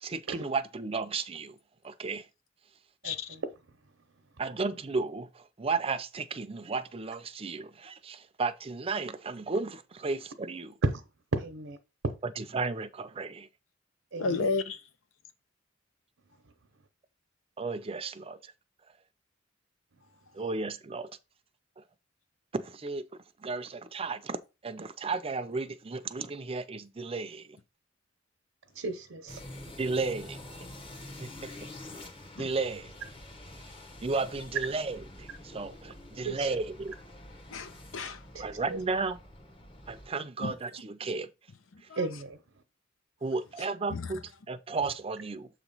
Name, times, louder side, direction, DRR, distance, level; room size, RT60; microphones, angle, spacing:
voice 1, 0.0-1.5 1.8-2.2 4.4-10.7 12.4-13.5 17.6-18.4 20.3-21.1 22.5-23.0 23.4-24.4 24.6-27.5 29.8-30.4 31.2-31.3 32.4-32.9 34.0-36.9 38.4-39.2 39.9-41.3 43.2-45.5, right 4 dB, 30° right, 0.5 m, -33 dB
voice 2, 3.0-3.5 10.8-11.0 11.5-11.7 12.0-12.1 14.1-14.5 28.7-29.4 36.2-36.6 38.3-38.6 42.0-42.4, right 3 dB, 75° right, 0.8 m, -33 dB
voice 3, 14.2-14.8 32.4-32.5 37.5-38.2 40.4-40.5 41.9-42.0 43.9-44.1, left 4 dB, 80° left, 0.7 m, -32 dB
sound 1, 29.3-40.1, left 1 dB, 25° left, 1.0 m, -47 dB
7.2 x 3.0 x 5.4 m
head